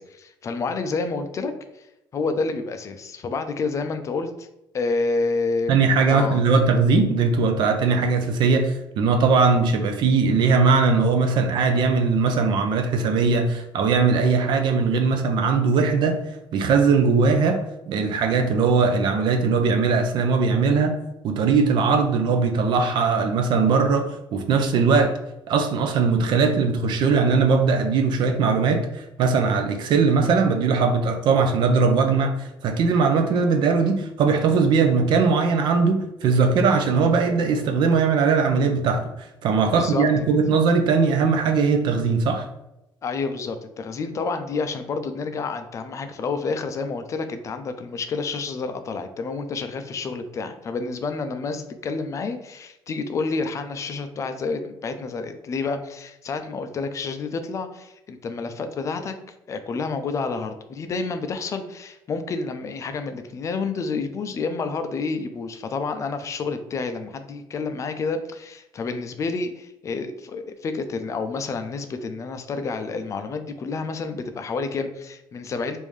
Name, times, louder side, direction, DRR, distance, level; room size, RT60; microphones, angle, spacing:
voice 1, 0.0-1.9 2.1-4.5 4.7-6.4 39.7-40.1 43.0-59.1 59.5-75.8, left 4 dB, 35° left, 8 dB, 0.3 m, -29 dB
voice 2, 5.7-16.2 16.5-21.0 21.2-25.2 25.5-42.5, right 4 dB, 65° right, 6 dB, 0.5 m, -20 dB
3.5 x 2.6 x 3.1 m, 0.87 s
cardioid pair, 120°, 9 cm